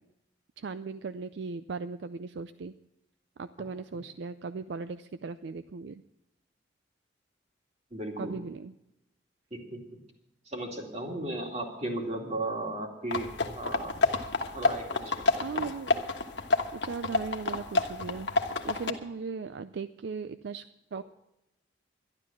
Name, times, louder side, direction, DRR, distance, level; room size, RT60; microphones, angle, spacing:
voice 1, 0.6-2.7 3.4-6.0 8.2-8.7 15.4-16.1 16.7-21.0, right 4 dB, 70° right, 12 dB, 0.4 m, -38 dB
voice 2, 7.9-8.4 9.5-10.0 10.5-13.3 13.5-14.0 14.5-15.6, right 1 dB, 35° right, 1 dB, 2.6 m, -35 dB
sound 1, 13.1-18.9, left 3 dB, 70° left, 1.3 m, -29 dB
12.0 x 11.5 x 7.1 m, 0.89 s
head